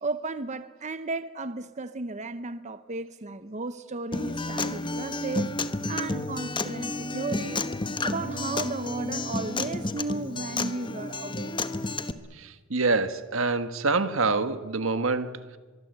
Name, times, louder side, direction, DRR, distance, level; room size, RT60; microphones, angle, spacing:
voice 1, 0.0-5.5 5.9-7.6 8.0-11.5, right 3 dB, 35° right, 0.8 m, -34 dB
Acoustic guitar, 4.1-12.1, left 2 dB, 25° left, 1.1 m, -31 dB
voice 2, 12.4-15.6, right 3 dB, 75° right, 1.4 m, -26 dB
24.0 x 23.5 x 8.0 m
head